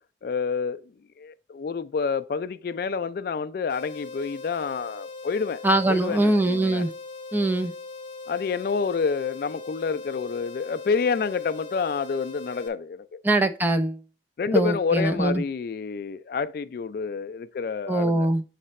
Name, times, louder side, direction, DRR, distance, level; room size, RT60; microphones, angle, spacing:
voice 1, 0.2-6.8 8.3-13.2 14.4-18.3, left 5 dB, 55° left, 0.3 m, -28 dB
sound 1, 3.7-12.7, left 3 dB, 25° left, 0.9 m, -40 dB
voice 2, 5.6-6.9 7.3-7.7 13.2-14.0 14.5-15.4 17.9-18.4, right 2 dB, 10° right, 0.5 m, -22 dB
7.3 x 3.3 x 4.0 m
head